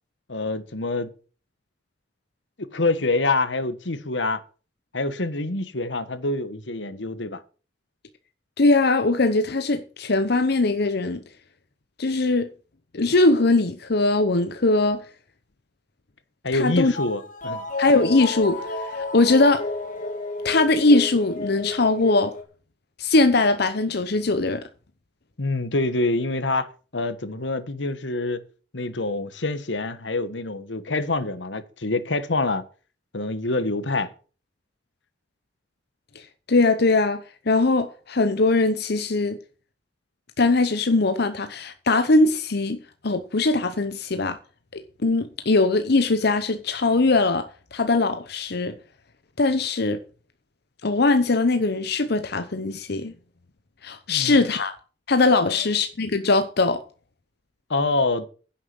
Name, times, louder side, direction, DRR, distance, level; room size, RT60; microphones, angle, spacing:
voice 1, 0.3-1.1 2.6-4.4 4.9-7.4 16.4-17.6 25.4-28.4 28.7-32.6 33.1-34.1 54.1-54.4 55.4-55.7 57.7-58.3, left 2 dB, 85° left, 1.4 m, -26 dB
voice 2, 8.6-11.2 12.0-12.5 12.9-15.0 16.5-16.9 17.8-19.7 20.4-22.4 23.0-24.6 36.1-36.2 36.5-39.4 40.4-42.8 43.0-44.4 44.7-48.8 49.4-50.0 50.8-53.1 53.8-54.8 55.1-56.8, left 3 dB, 60° left, 0.9 m, -21 dB
sound 1, 16.9-22.4, left 2 dB, 45° left, 2.1 m, -31 dB
10.5 x 7.3 x 7.6 m
head